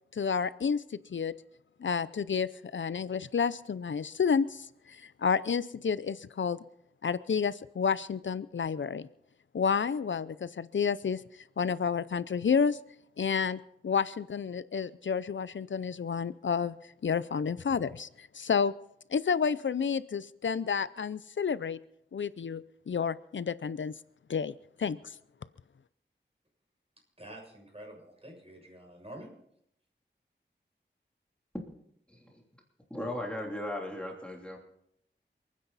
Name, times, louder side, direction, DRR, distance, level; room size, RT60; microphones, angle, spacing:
voice 1, 0.1-1.3 1.8-6.6 7.0-9.1 9.5-11.2 11.6-12.8 13.2-16.8 17.0-18.7 19.1-21.8 22.1-23.9 24.3-24.5 24.8-25.0, left 6 dB, 75° left, 16 dB, 0.5 m, -30 dB
voice 2, 27.2-29.3, right 1 dB, 30° right, 0 dB, 6.9 m, -47 dB
voice 3, 32.1-32.4 32.9-34.6, left 1 dB, 5° left, -1 dB, 3.1 m, -37 dB
28.5 x 9.9 x 4.1 m, 0.73 s
wide cardioid pair, 70°, 20 cm